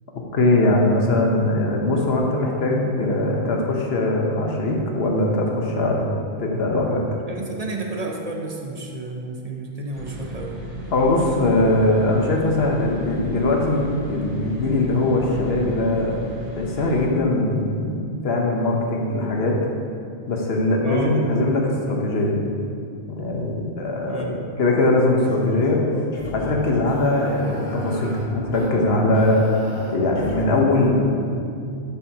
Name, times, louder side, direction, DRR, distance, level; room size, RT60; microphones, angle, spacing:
voice 1, 0.3-6.1 6.4-7.0 10.9-16.2 16.6-18.0 18.2-19.6 20.3-22.4 23.1-25.8 26.3-29.4 29.9-31.0, left 2 dB, 70° left, 0 dB, 1.2 m, -21 dB
voice 2, 7.3-10.6 20.8-21.4 24.0-24.5, right 2 dB, 40° right, 1 dB, 0.6 m, -31 dB
sound 1, 9.9-17.1, right 1 dB, 65° right, 1.7 m, -36 dB
sound 2, 25.2-30.4, left 1 dB, 45° left, 1.3 m, -34 dB
11.5 x 5.6 x 2.8 m, 2.4 s
omnidirectional pair, 1.1 m